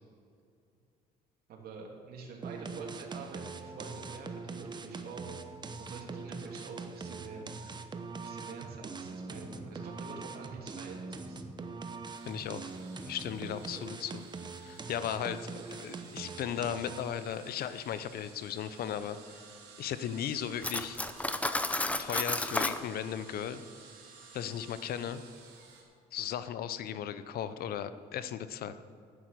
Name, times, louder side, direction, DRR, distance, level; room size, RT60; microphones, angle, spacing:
voice 1, 1.5-5.3 5.8-7.5 8.2-11.4, right 4 dB, 65° right, 0 dB, 2.8 m, -46 dB
sound 1, 2.4-17.2, right 4 dB, 25° right, 0.9 m, -43 dB
sound 2, 12.0-25.8, right 5 dB, 85° right, 3.3 m, -54 dB
voice 2, 12.3-12.7 13.1-14.2 14.6-19.4 19.8-21.0 22.0-23.6 24.3-25.2 26.1-28.7, left 9 dB, 65° left, 13 dB, 0.8 m, -36 dB
Cutlery silverware, 20.6-22.8, left 2 dB, 10° left, 0.6 m, -32 dB
11.0 x 9.5 x 6.7 m, 2.4 s
cardioid pair, 110°, 17 cm